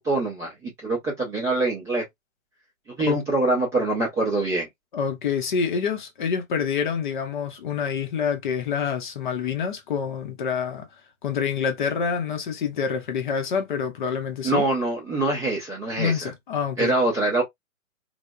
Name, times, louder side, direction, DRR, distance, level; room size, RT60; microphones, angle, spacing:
voice 1, 0.0-2.0 3.0-4.7 14.4-16.3 16.8-17.4, right 2 dB, 5° right, 0.5 m, -24 dB
voice 2, 4.9-10.9 11.2-14.6 16.0-16.9, left 6 dB, 35° left, 0.7 m, -27 dB
3.3 x 2.1 x 2.2 m
hypercardioid pair, 135°, 41 cm